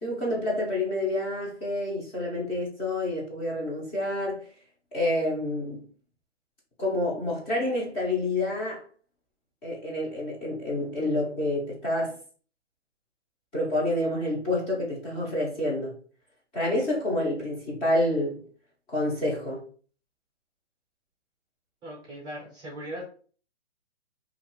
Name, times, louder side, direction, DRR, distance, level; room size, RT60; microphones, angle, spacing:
voice 1, 0.0-4.4 4.9-5.8 6.8-8.8 9.6-12.2 13.5-15.9 16.5-18.4 18.9-19.6, left 1 dB, 15° left, 0.8 m, -28 dB
voice 2, 21.8-23.0, right 1 dB, 10° right, 0.7 m, -39 dB
2.7 x 2.5 x 3.0 m
hypercardioid pair, 145°, 35 cm